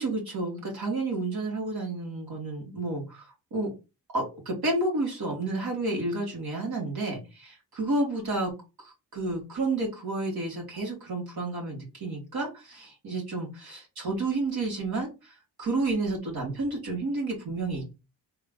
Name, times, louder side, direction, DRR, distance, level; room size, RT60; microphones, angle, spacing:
voice 1, 0.0-3.7 4.1-8.5 8.8-17.9, right 2 dB, 60° right, -2 dB, 1.5 m, -31 dB
3.6 x 2.4 x 3.5 m, 0.27 s
cardioid pair, 55°, 41 cm